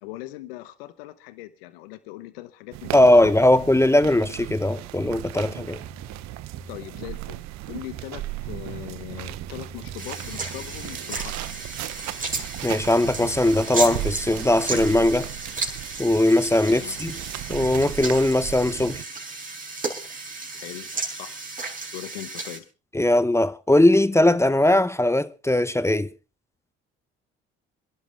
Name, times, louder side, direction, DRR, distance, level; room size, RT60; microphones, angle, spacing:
voice 1, 0.0-3.3 6.7-11.4 16.6-17.0 20.5-21.4 21.9-22.7, left 16 dB, 90° left, 1.0 m, -40 dB
sound 1, 2.7-19.0, right 16 dB, 70° right, 0.8 m, -36 dB
voice 2, 2.9-5.8 12.6-15.3 16.0-17.2 17.5-19.0 22.9-26.1, left 1 dB, 10° left, 0.8 m, -19 dB
sound 2, 4.9-11.6, right 3 dB, 45° right, 5.0 m, -46 dB
sound 3, 10.0-22.6, right 3 dB, 30° right, 4.8 m, -34 dB
26.5 x 11.0 x 3.4 m
hypercardioid pair, 60°, 29 cm